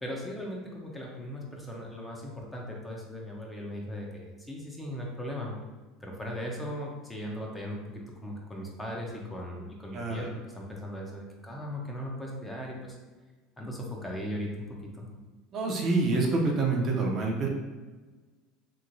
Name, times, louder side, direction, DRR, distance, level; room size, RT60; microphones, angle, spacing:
voice 1, 0.0-5.6 6.0-13.0 13.6-15.1, equal, 15° left, -1 dB, 0.7 m, -38 dB
voice 2, 9.9-10.3 15.5-17.5, right 3 dB, 40° right, 0 dB, 0.6 m, -27 dB
3.0 x 2.9 x 2.6 m, 1.3 s
supercardioid pair, 100°, 0 cm